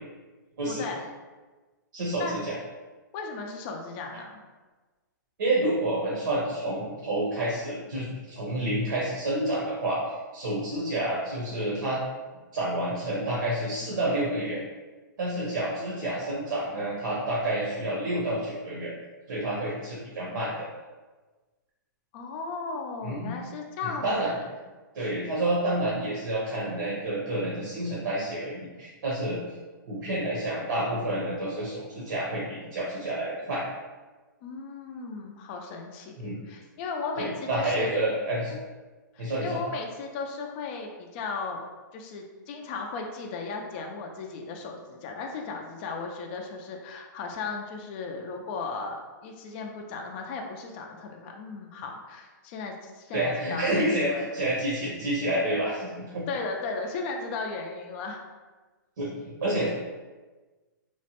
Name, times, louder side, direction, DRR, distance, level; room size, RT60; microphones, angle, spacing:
voice 1, 0.7-1.1 2.2-2.3 3.1-4.4 22.1-24.5 34.4-37.9 39.1-41.6 41.9-54.3 56.3-58.2, left 4 dB, 30° left, 2 dB, 0.3 m, -36 dB
voice 2, 1.9-2.5 5.4-12.0 12.5-14.6 15.2-18.9 19.3-20.5 23.0-23.3 23.8-24.3 24.9-29.4 29.9-33.6 36.2-36.4 37.2-38.6 39.2-39.6 53.1-56.2 59.0-59.1 59.4-59.7, right 1 dB, 80° right, -6 dB, 0.8 m, -29 dB
3.0 x 2.1 x 2.8 m, 1.3 s
hypercardioid pair, 150°, 11 cm